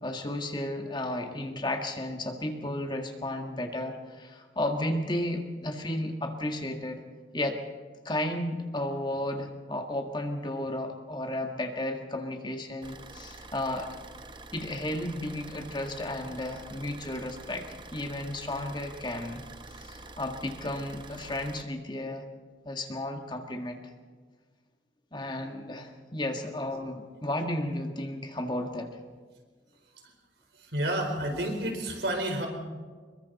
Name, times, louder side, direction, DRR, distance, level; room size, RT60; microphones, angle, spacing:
voice 1, 0.0-7.0 7.3-7.6 8.1-13.9 14.5-17.7 17.9-19.4 19.7-22.3 22.7-23.8 25.1-28.9, left 1 dB, 25° left, 4 dB, 1.8 m, -33 dB
Car / Idling, 12.8-21.6, right 2 dB, 25° right, 1.0 m, -47 dB
voice 2, 30.5-32.5, right 1 dB, 70° right, 3 dB, 4.5 m, -30 dB
27.0 x 22.5 x 4.2 m, 1.5 s
head